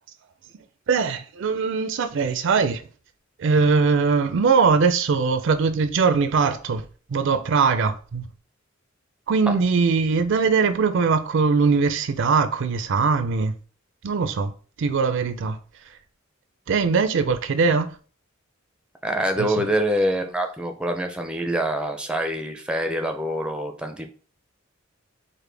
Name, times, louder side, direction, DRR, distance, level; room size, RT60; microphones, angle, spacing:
voice 1, 0.5-2.8 3.4-8.3 9.3-13.5 14.0-14.5 14.8-16.0 16.7-18.0 19.4-19.7, right 5 dB, 65° right, 0.4 m, -21 dB
voice 2, 19.0-24.1, right 1 dB, 5° right, 0.4 m, -25 dB
4.9 x 2.1 x 3.3 m
head